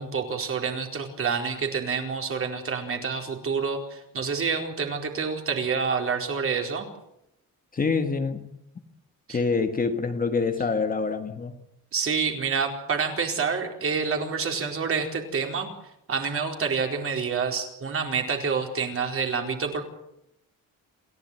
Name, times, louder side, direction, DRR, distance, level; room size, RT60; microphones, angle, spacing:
voice 1, 0.0-6.9 9.3-9.4 11.9-15.7 16.1-19.8, right 5 dB, 40° right, 4.4 m, -28 dB
voice 2, 7.7-8.5 9.3-11.5, left 4 dB, 25° left, 1.6 m, -26 dB
28.0 x 15.5 x 9.3 m
cardioid pair, 165°, 33 cm